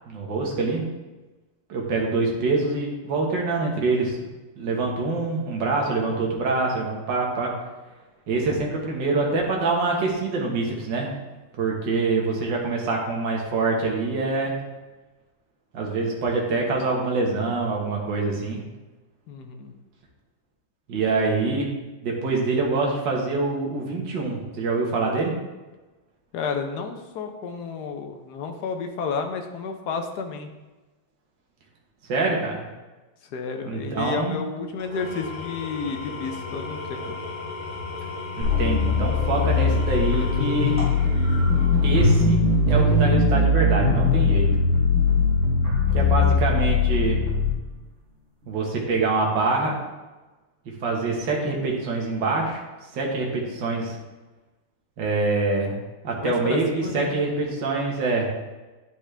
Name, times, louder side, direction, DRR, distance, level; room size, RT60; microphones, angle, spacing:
voice 1, 0.1-0.8 1.7-4.2 4.6-7.5 8.3-11.1 11.6-14.5 15.7-18.6 20.9-21.7 22.0-25.4 32.1-32.6 33.6-34.4 38.4-40.8 41.8-42.4 42.7-44.5 45.9-47.2 48.5-49.8 50.8-52.6 52.9-54.0 55.0-55.8 56.0-58.3, right 3 dB, 60° right, -1 dB, 1.9 m, -25 dB
voice 2, 19.3-19.7 26.3-30.5 33.3-37.1 56.1-57.1, left 5 dB, 65° left, 5 dB, 1.1 m, -31 dB
Engine / Tools, 34.8-42.3, left 3 dB, 25° left, 2.5 m, -35 dB
sound 1, 38.4-47.5, left 3 dB, 35° right, 2.1 m, -20 dB
10.5 x 5.2 x 3.3 m, 1.2 s
omnidirectional pair, 2.3 m